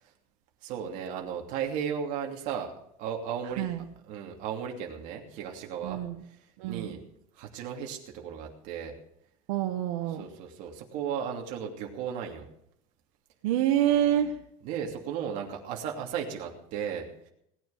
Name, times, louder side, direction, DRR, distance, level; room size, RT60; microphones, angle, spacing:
voice 1, 0.6-2.7 3.0-3.7 4.0-6.0 6.7-7.0 7.4-8.9 10.1-12.5 14.6-17.3, right 8 dB, 45° right, 1 dB, 2.9 m, -35 dB
voice 2, 5.8-6.2 6.6-6.9 9.5-10.2 13.4-14.3, right 11 dB, 85° right, 5 dB, 1.5 m, -26 dB
18.5 x 9.3 x 6.6 m, 0.73 s
cardioid pair, 175°, 17 cm